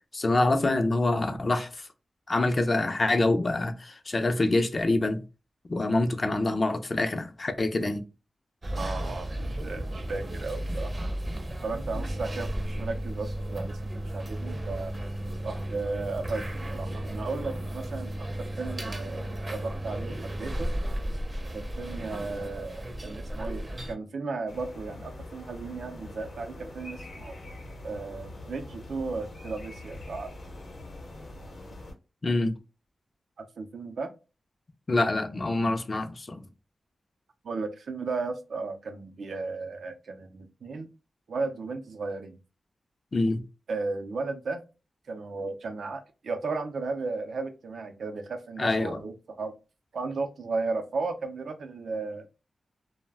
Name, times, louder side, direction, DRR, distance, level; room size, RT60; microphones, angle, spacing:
voice 1, 0.1-1.9 2.3-5.2 5.7-8.0 32.2-32.6 34.9-36.5 43.1-43.4 48.6-49.0, left 2 dB, 35° left, 0.4 m, -26 dB
sound 1, 8.6-23.9, right 1 dB, 25° right, 0.5 m, -34 dB
voice 2, 8.8-11.2 11.6-12.5 12.8-14.9 15.4-16.4 16.7-19.3 19.5-20.7 21.5-27.4 27.8-30.3 33.4-34.1 37.4-40.9 41.3-42.4 43.7-44.6 45.1-49.5 49.9-52.3, right 3 dB, 75° right, 0.4 m, -35 dB
sound 2, 24.5-31.9, left 1 dB, 75° left, 0.7 m, -43 dB
2.3 x 2.1 x 3.4 m
wide cardioid pair, 105°, 0 cm